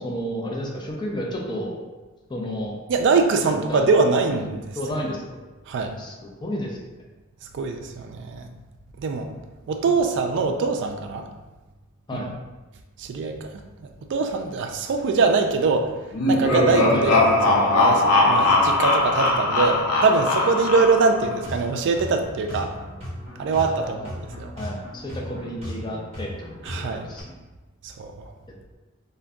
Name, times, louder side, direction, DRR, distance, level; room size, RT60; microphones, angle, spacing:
voice 1, 0.0-1.8 2.3-2.8 3.4-3.9 4.8-5.2 6.0-6.8 12.1-12.3 16.9-17.0 23.6-24.1 24.6-27.2, equal, 20° left, -1 dB, 0.4 m, -31 dB
voice 2, 2.9-4.6 5.7-5.9 7.5-8.5 9.0-9.3 9.7-11.3 12.1-12.2 13.0-13.5 14.1-15.9 16.3-22.7 23.4-24.5 26.7-27.0 27.8-28.1, right 4 dB, 55° right, 5 dB, 0.3 m, -23 dB
sound 1, 16.1-21.2, left 2 dB, 80° left, 0.5 m, -20 dB
sound 2, 21.1-27.2, equal, 30° right, 1.1 m, -37 dB
2.5 x 2.2 x 3.5 m, 1.2 s
head